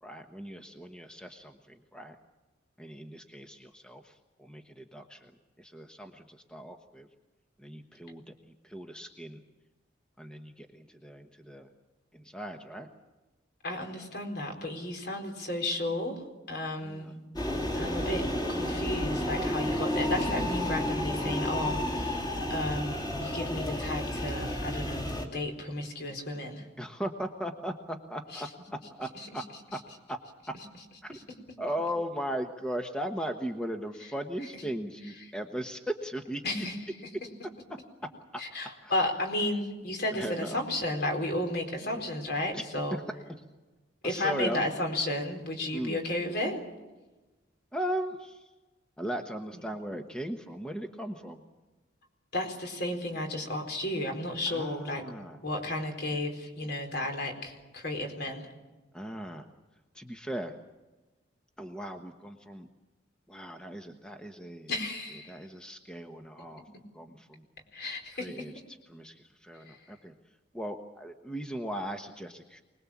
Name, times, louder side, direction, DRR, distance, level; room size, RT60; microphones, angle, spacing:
voice 1, 0.0-2.2 2.8-5.3 5.6-7.1 7.6-9.4 10.2-11.7 12.1-12.9 16.8-17.1 26.8-29.4 29.7-29.8 30.1-30.2 31.0-31.2 31.6-36.4 38.8-39.1 40.1-40.6 42.5-42.6 42.9-43.0 44.0-44.7 45.7-46.0 47.7-48.5 49.0-51.4 54.5-55.4 58.9-59.5 59.9-60.5 61.6-62.7 63.3-64.7 65.2-66.6 66.9-67.5 68.2-68.5 68.9-72.6, equal, 5° left, 4 dB, 1.1 m, -38 dB
voice 2, 13.6-16.2 16.5-17.2 17.7-18.2 18.5-26.7 28.3-28.4 31.1-31.2 36.4-36.8 38.4-43.0 44.0-46.6 52.3-55.0 55.4-58.5 64.7-65.4 67.7-68.5 69.7-69.8, left 1 dB, 55° left, 4 dB, 4.4 m, -33 dB
sound 1, 17.4-25.3, left 1 dB, 20° left, 2.9 m, -31 dB
25.0 x 20.5 x 7.3 m, 1.2 s
head